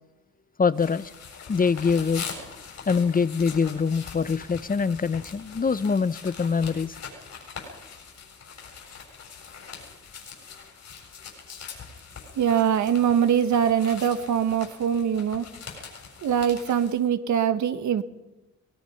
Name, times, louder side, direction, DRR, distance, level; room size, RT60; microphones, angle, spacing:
voice 1, 0.6-1.1 1.5-2.2 2.9-7.0, left 5 dB, 30° left, 17 dB, 0.7 m, -24 dB
sound 1, 0.7-17.0, left 6 dB, 70° left, 7.4 m, -42 dB
voice 2, 12.4-15.5 16.2-18.0, right 8 dB, 75° right, 10 dB, 1.5 m, -23 dB
23.0 x 19.5 x 5.8 m, 1.0 s
cardioid pair, 80°, 29 cm